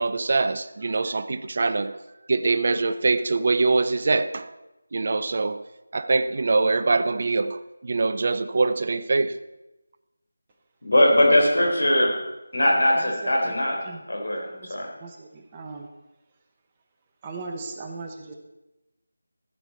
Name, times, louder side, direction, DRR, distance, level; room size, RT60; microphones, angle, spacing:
voice 1, 0.0-2.0 2.3-4.5 4.9-5.6 5.9-9.4, right 3 dB, 45° right, 0.5 m, -23 dB
voice 2, 10.8-12.2 12.5-13.8 14.1-14.9, left 1 dB, 75° left, 3.8 m, -20 dB
voice 3, 13.0-13.5 13.8-14.0 14.5-15.9 17.2-18.4, right 3 dB, 20° right, 1.0 m, -38 dB
14.5 x 8.0 x 4.2 m
figure-of-eight pair, 165°, 0 cm